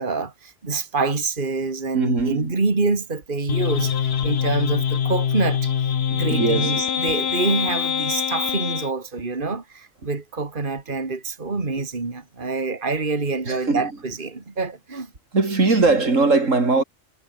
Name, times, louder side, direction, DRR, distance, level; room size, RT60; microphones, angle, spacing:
voice 1, 0.0-3.9 4.2-5.7 6.1-15.1, right 3 dB, 40° right, 2.5 m, -26 dB
voice 2, 1.9-2.5 6.3-6.9 13.5-13.9 15.3-16.8, right 3 dB, 80° right, 3.7 m, -20 dB
sound 1, 3.5-8.9, left 8 dB, 55° left, 1.1 m, -24 dB
omnidirectional pair, 1.3 m